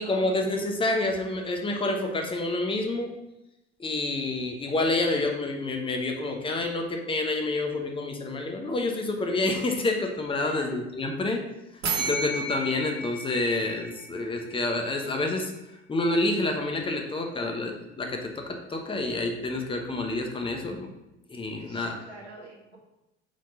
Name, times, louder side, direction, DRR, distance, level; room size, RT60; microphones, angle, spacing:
voice 1, 0.0-3.2 3.8-11.4 11.7-15.5 15.9-20.9 21.3-22.0, left 2 dB, 15° left, 3 dB, 1.0 m, -28 dB
voice 2, 10.3-10.7 17.3-17.6 21.6-22.8, right 2 dB, 90° right, -4 dB, 1.5 m, -45 dB
sound 1, 11.8-14.6, right 3 dB, 50° right, 2.0 m, -32 dB
5.0 x 3.7 x 5.5 m, 0.93 s
figure-of-eight pair, 65°, 33 cm